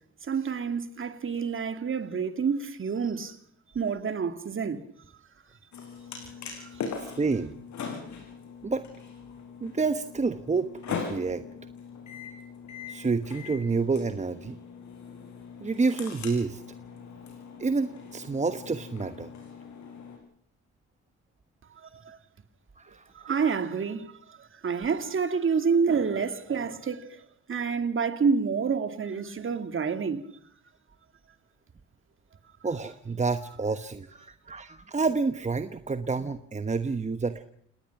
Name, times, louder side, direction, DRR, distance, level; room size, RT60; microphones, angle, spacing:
voice 1, 0.3-3.4 3.7-4.8 22.1-22.2 23.2-24.1 24.6-27.2 27.5-30.2, right 5 dB, 40° right, 2.5 m, -28 dB
sound 1, 5.7-20.2, left 6 dB, 70° left, 6.6 m, -41 dB
voice 2, 7.2-7.6 8.6-8.9 9.6-11.4 12.9-14.6 15.6-16.6 17.6-19.3 22.8-23.5 32.6-37.4, right 4 dB, 25° right, 1.2 m, -29 dB
29.5 x 19.0 x 6.0 m
cardioid pair, 90°, 30 cm